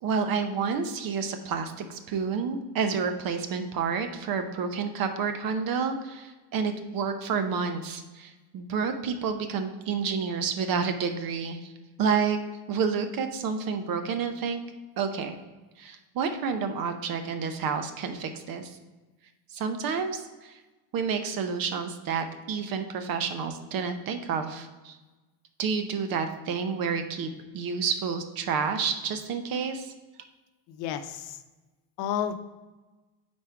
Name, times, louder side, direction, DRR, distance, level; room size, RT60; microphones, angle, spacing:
voice 1, 0.0-11.7 12.0-12.4 12.7-14.6 15.0-15.4 15.8-18.7 19.5-20.6 20.9-25.0 25.6-27.3 27.5-29.9, right 5 dB, 50° right, 7 dB, 0.8 m, -29 dB
voice 2, 30.7-31.4 32.0-32.3, left 9 dB, 75° left, 9 dB, 0.7 m, -31 dB
4.8 x 4.3 x 5.8 m, 1.2 s
cardioid pair, 135°, 45 cm